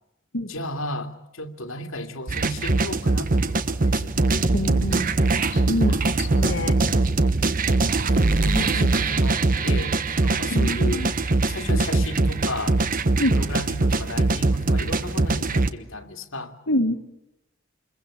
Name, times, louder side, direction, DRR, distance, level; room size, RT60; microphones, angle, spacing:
voice 1, 0.5-4.1 6.2-6.5 8.4-9.4 9.6-11.1 11.5-12.8 13.3-16.5, left 1 dB, 90° left, 4 dB, 2.6 m, -34 dB
sound 1, 2.3-15.7, right 2 dB, 45° right, 1.1 m, -22 dB
voice 2, 4.5-5.2 5.5-6.7 8.5-8.9 10.5-11.1 13.2-13.3 16.7-16.9, left 1 dB, 75° left, 1 dB, 2.0 m, -26 dB
27.5 x 22.5 x 8.6 m, 0.86 s
head